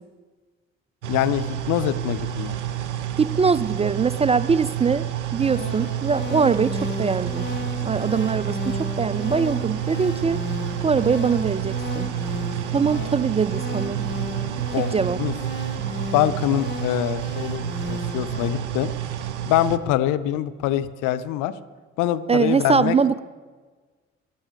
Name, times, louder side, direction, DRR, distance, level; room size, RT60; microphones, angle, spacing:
sound 1, 1.0-19.8, right 11 dB, 85° right, 0.5 m, -29 dB
voice 1, 1.1-2.6 12.7-13.1 14.7-14.9 15.2-15.3 16.1-18.9 19.4-21.5 22.0-23.0, left 12 dB, 65° left, 13 dB, 0.7 m, -24 dB
voice 2, 3.2-5.1 5.3-7.5 7.8-10.4 10.8-12.1 12.7-14.0 14.8-15.2 22.3-23.2, right 5 dB, 20° right, 16 dB, 0.4 m, -22 dB
sound 2, 5.4-18.5, left 3 dB, 35° left, 2.1 m, -35 dB
21.0 x 11.5 x 3.5 m, 1.4 s
figure-of-eight pair, 40°, 34 cm